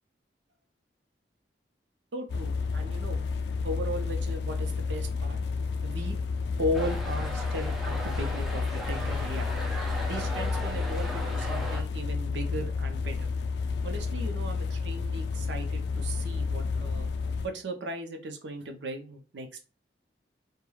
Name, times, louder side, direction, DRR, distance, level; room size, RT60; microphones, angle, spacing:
voice 1, 2.1-3.2 3.6-5.4 5.8-6.2 6.6-9.5 10.1-13.3 13.8-17.1 17.4-19.6, equal, 90° right, 5 dB, 0.6 m, -36 dB
sound 1, 2.3-17.5, left 4 dB, 75° left, 0.3 m, -31 dB
sound 2, 6.7-11.8, equal, ahead, 0.5 m, -37 dB
2.3 x 2.2 x 3.1 m, 0.33 s
head